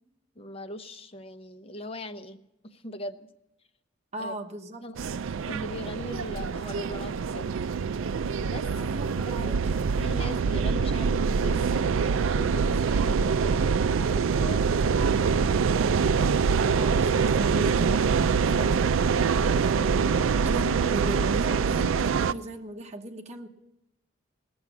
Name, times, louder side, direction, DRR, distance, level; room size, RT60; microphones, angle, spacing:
voice 1, 0.4-2.4 2.6-3.3 4.2-4.3 4.8-4.9 5.5-7.5 8.4-8.7 9.3-9.6 10.0-15.2, left 1 dB, 30° left, 0.7 m, -40 dB
voice 2, 4.1-4.9 8.8-9.7 16.7-19.0 19.4-23.5, right 1 dB, 35° right, 1.0 m, -37 dB
sound 1, 5.0-22.3, right 5 dB, 85° right, 0.4 m, -25 dB
18.0 x 7.0 x 9.4 m
head